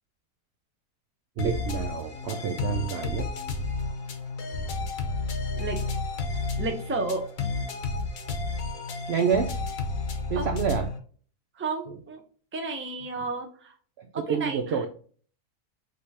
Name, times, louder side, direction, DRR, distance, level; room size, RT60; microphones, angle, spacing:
sound 1, 1.4-11.0, left 3 dB, 65° left, 1.1 m, -31 dB
voice 1, 1.4-3.3 9.1-9.6 10.3-10.9 11.9-12.0 14.0-14.9, right 7 dB, 85° right, 5 dB, 0.5 m, -28 dB
voice 2, 6.6-7.2 10.3-10.5 11.6-12.2 12.5-13.7 14.1-14.8, right 3 dB, 15° right, 3 dB, 0.4 m, -32 dB
5.2 x 3.3 x 2.8 m, 0.43 s
omnidirectional pair, 1.7 m